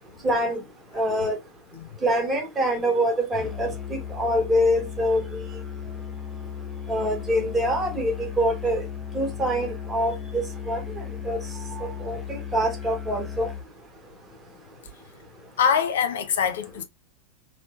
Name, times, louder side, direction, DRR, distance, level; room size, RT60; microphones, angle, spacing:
voice 1, 0.2-0.6 0.9-1.4 2.0-5.3 6.9-8.9 9.1-11.4 11.8-13.5, equal, 15° right, 1.0 m, -25 dB
Musical instrument, 3.3-13.7, left 7 dB, 5° left, 0.6 m, -36 dB
voice 2, 15.6-16.8, left 7 dB, 60° left, 0.5 m, -23 dB
3.1 x 3.0 x 2.2 m
figure-of-eight pair, 90°, 0 cm